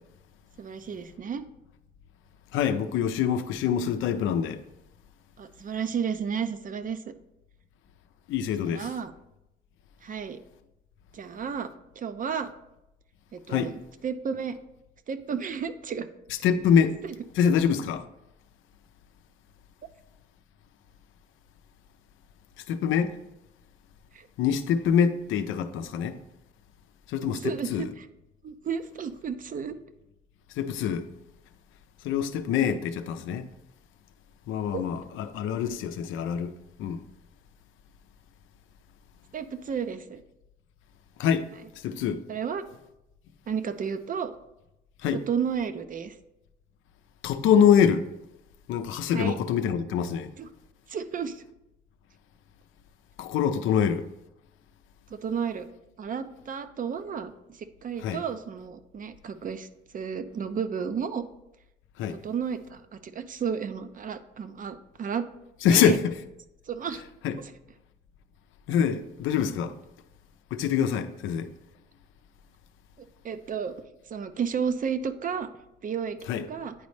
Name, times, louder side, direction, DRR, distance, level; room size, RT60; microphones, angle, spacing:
voice 1, 0.6-1.4 5.4-7.0 8.6-9.1 10.0-10.4 11.1-11.7 12.0-12.5 13.3-13.7 14.0-14.6 15.1-16.1 17.0-17.1 24.1-24.3 27.2-28.1 28.4-29.8 34.7-34.8 39.3-40.2 42.3-42.6 43.5-44.3 45.1-46.2 49.1-49.4 50.4-50.5 50.9-51.4 55.1-55.7 56.0-59.7 59.9-61.3 62.1-65.3 65.7-66.0 66.7-67.0 67.4-67.5 73.2-73.7 74.1-75.5 75.8-76.2 76.5-76.7, right 7 dB, 45° right, 0.5 m, -32 dB
voice 2, 2.5-4.6 8.3-8.9 13.5-13.7 16.4-17.0 17.4-18.0 22.7-23.2 24.4-26.2 27.1-27.8 30.6-31.1 32.0-33.5 34.5-36.5 36.8-37.0 41.2-41.5 41.8-42.2 45.0-45.2 47.2-48.1 48.7-50.3 53.2-54.1 58.0-58.2 62.0-62.2 65.6-66.1 67.2-67.4 68.7-69.7 70.5-71.5 76.3-76.4, left 8 dB, 85° left, 0.5 m, -25 dB
9.4 x 4.1 x 3.2 m
cardioid pair, 90°, 20 cm